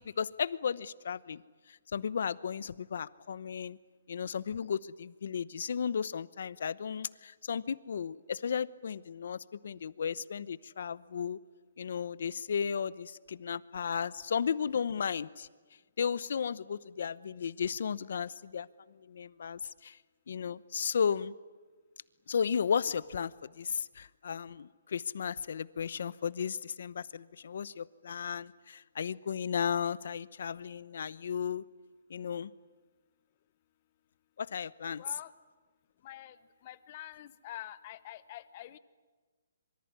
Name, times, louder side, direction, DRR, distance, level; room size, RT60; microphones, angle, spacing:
voice 1, 0.0-1.4 1.7-3.8 4.1-11.4 11.8-15.5 16.0-18.7 19.0-20.0 20.3-21.3 22.3-31.6 32.1-32.5 34.4-35.0, left 7 dB, 60° left, 18 dB, 0.9 m, -34 dB
voice 2, 35.0-35.3 36.0-36.4 36.6-38.8, left 13 dB, 30° left, 15 dB, 0.9 m, -46 dB
25.5 x 23.5 x 9.7 m, 1.4 s
hypercardioid pair, 165°, 0 cm